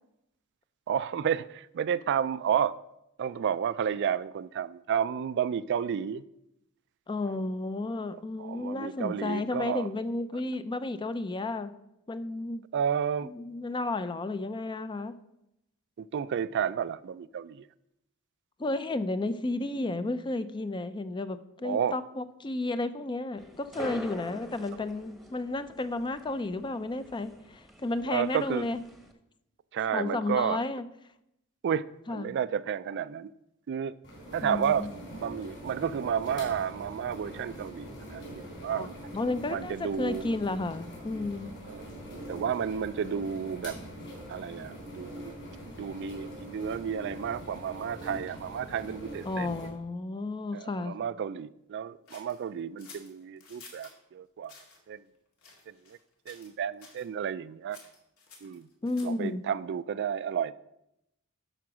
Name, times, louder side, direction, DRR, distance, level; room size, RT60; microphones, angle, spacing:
voice 1, 0.9-2.7 3.2-6.2 8.4-9.9 12.7-13.3 16.0-17.7 21.6-22.0 28.0-28.7 29.7-30.6 31.6-33.3 33.7-33.9 34.3-34.9 35.1-38.9 39.5-40.2 41.7-41.9 42.3-43.8 44.3-45.3 45.8-49.7 50.5-54.5 54.9-55.0 55.7-56.0 56.3-57.8 58.4-58.7 59.0-60.5, right 8 dB, 55° right, 0.3 m, -31 dB
voice 2, 7.1-11.7 12.1-12.6 13.2-15.2 18.6-28.8 29.9-30.8 32.1-32.3 34.4-34.9 38.7-41.5 49.3-50.9 58.8-59.4, left 2 dB, 20° left, 0.4 m, -32 dB
sound 1, 23.4-29.1, left 1 dB, ahead, 0.9 m, -46 dB
sound 2, 34.0-49.7, equal, 55° left, 4.1 m, -43 dB
sound 3, 52.1-54.0 54.4-54.8 55.4-56.0 56.3-56.5 56.8-57.1 57.7-59.3, left 4 dB, 75° left, 2.2 m, -52 dB
11.0 x 4.7 x 6.0 m
head